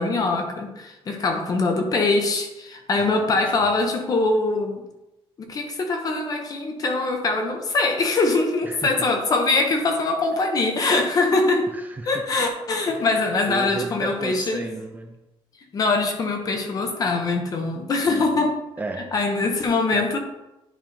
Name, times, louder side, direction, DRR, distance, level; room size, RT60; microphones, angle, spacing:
voice 1, 0.0-4.8 5.4-11.7 12.1-14.6 15.7-18.6 19.1-20.2, left 3 dB, 35° left, 4 dB, 1.1 m, -23 dB
voice 2, 3.0-3.7 8.6-8.9 11.7-12.3 12.9-13.1 13.5-15.2 18.1-18.5 18.8-19.1 19.4-20.2, right 2 dB, 15° right, 3 dB, 0.6 m, -35 dB
10.0 x 3.5 x 4.3 m, 0.95 s
cardioid pair, 165°, 10 cm